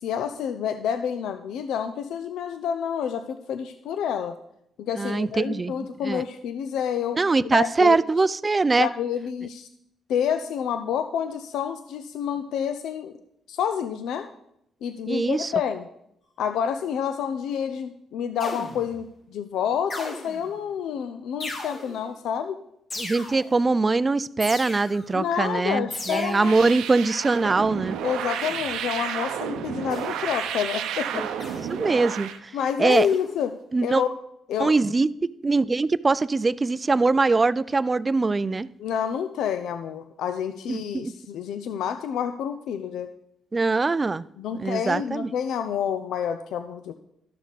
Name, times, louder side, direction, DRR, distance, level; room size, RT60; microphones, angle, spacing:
voice 1, 0.0-4.4 4.8-8.0 8.8-9.7 10.1-13.1 13.5-14.3 14.8-15.9 16.4-22.6 25.1-26.5 28.0-31.2 32.5-33.5 33.8-34.1 34.5-34.7 38.8-43.1 44.4-46.9, left 8 dB, 80° left, 9 dB, 0.5 m, -28 dB
voice 2, 4.9-6.2 7.2-8.9 15.1-15.5 23.0-28.0 31.1-31.3 31.7-32.5 32.8-33.1 33.7-34.0 34.6-35.1 35.4-38.7 40.7-41.1 43.5-44.2 44.6-45.3, right 3 dB, 30° right, 18 dB, 0.4 m, -22 dB
sound 1, 18.4-19.0 19.9-20.6 21.4-22.1 22.9-23.6 24.4-25.2 25.9-26.7 28.4-28.8 29.9-30.4 31.4-31.9 32.9-33.4, left 2 dB, 60° left, 3.3 m, -37 dB
sound 2, 26.3-32.4, right 8 dB, 85° right, 0.6 m, -31 dB
12.5 x 6.3 x 4.0 m, 0.78 s
cardioid pair, 75°, 0 cm